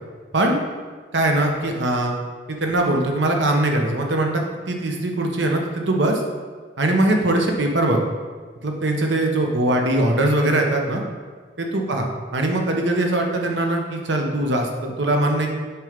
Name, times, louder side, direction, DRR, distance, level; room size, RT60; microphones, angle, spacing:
voice 1, 1.1-2.1 2.5-6.2 6.8-8.0 8.6-11.0 11.6-15.5, right 1 dB, 85° right, 2 dB, 1.0 m, -21 dB
7.0 x 4.5 x 5.1 m, 1.5 s
head